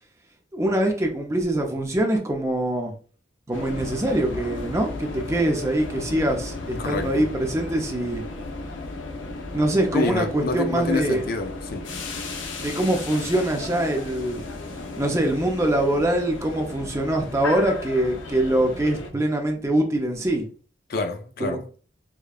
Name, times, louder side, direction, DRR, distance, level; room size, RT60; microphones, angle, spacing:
voice 1, 0.5-2.9 3.5-8.2 9.5-11.2 12.6-14.4 15.0-20.4 21.4-21.6, right 1 dB, 15° right, 0.5 m, -24 dB
sound 1, 3.5-19.1, left 3 dB, 90° left, 0.6 m, -35 dB
voice 2, 6.8-7.3 9.9-11.9 20.9-21.7, left 3 dB, 50° left, 0.4 m, -27 dB
4.9 x 2.2 x 2.3 m
head